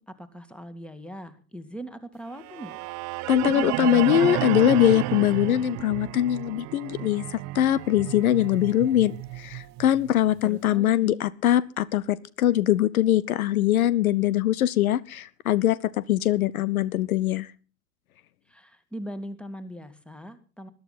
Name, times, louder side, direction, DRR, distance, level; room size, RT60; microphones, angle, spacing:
voice 1, 0.0-2.8 10.4-11.2 18.5-20.7, equal, ahead, 12 dB, 2.1 m, -40 dB
sound 1, 2.4-10.5, right 19 dB, 40° right, 0.7 m, -32 dB
voice 2, 3.3-17.5, left 12 dB, 70° left, 21 dB, 0.8 m, -22 dB
21.0 x 12.0 x 4.1 m, 0.36 s
figure-of-eight pair, 75°, 44 cm